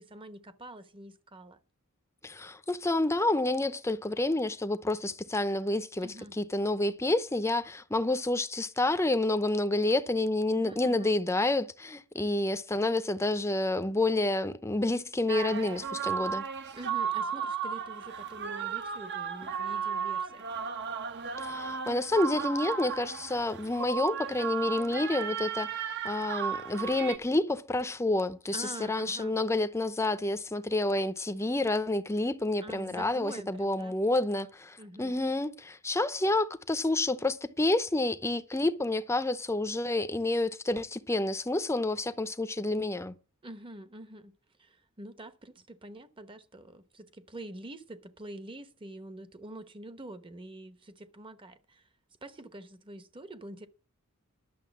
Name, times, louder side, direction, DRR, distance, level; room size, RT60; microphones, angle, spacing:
voice 1, 0.0-1.6 6.0-6.4 10.5-11.2 16.7-20.5 28.5-29.4 32.6-33.9 34.8-35.1 43.4-44.3 44.6-51.8 52.2-53.7, right 1 dB, 25° right, 0.9 m, -46 dB
voice 2, 2.2-16.5 21.4-43.2, left 2 dB, 15° left, 0.7 m, -29 dB
sound 1, 15.3-27.2, right 7 dB, 55° right, 1.0 m, -35 dB
11.5 x 6.7 x 7.2 m
head